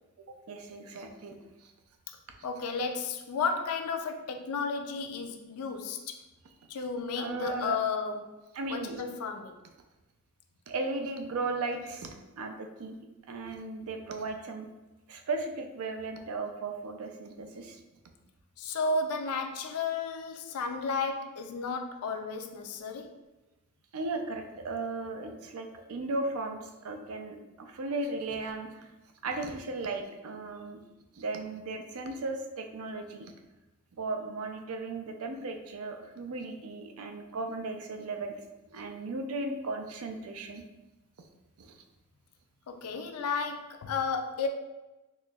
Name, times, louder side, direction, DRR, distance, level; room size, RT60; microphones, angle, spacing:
voice 1, 0.3-1.4 1.6-1.7 7.2-7.8 8.5-9.0 10.7-13.0 13.3-14.7 15.1-17.8 23.9-28.9 29.2-30.8 31.1-33.3 34.0-38.3 38.7-40.6 41.6-41.7, right 3 dB, 70° right, 5 dB, 0.5 m, -36 dB
voice 2, 2.4-6.2 6.7-8.3 8.7-9.6 18.6-23.2 42.7-44.5, left 4 dB, 85° left, 6 dB, 0.4 m, -33 dB
4.1 x 3.1 x 2.3 m, 1.1 s
head